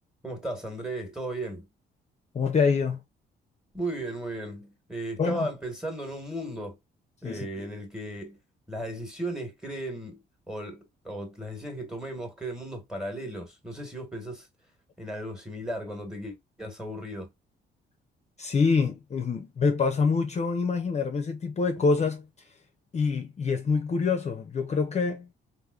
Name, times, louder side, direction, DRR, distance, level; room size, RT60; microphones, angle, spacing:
voice 1, 0.2-1.7 3.7-6.8 7.2-8.4 8.7-14.5 15.0-17.3, right 1 dB, 5° right, 1.2 m, -36 dB
voice 2, 2.3-3.0 5.2-5.5 7.2-7.7 18.4-22.3 22.9-25.3, left 5 dB, 35° left, 0.5 m, -26 dB
3.5 x 2.5 x 2.3 m
cardioid pair, 90°, 20 cm